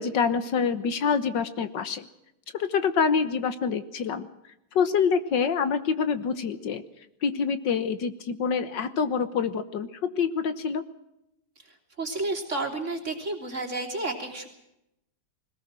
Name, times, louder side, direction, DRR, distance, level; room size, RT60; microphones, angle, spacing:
voice 1, 0.0-2.1 2.5-4.3 4.8-6.8 7.2-10.8, left 6 dB, 70° left, 12 dB, 1.8 m, -26 dB
voice 2, 11.6-14.5, right 2 dB, 35° right, 3 dB, 3.7 m, -31 dB
22.0 x 19.5 x 7.5 m, 0.84 s
omnidirectional pair, 2.1 m